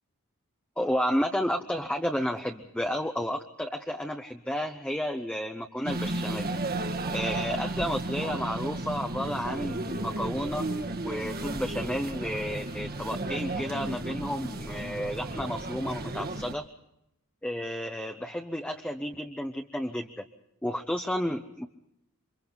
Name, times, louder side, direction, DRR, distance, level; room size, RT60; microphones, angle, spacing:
voice 1, 0.8-6.5 7.1-10.7 11.0-16.7 17.4-20.2 20.6-21.7, equal, 5° left, 3 dB, 0.9 m, -32 dB
sound 1, 5.9-16.6, right 2 dB, 45° right, 1.7 m, -33 dB
29.0 x 24.5 x 4.0 m, 0.82 s
head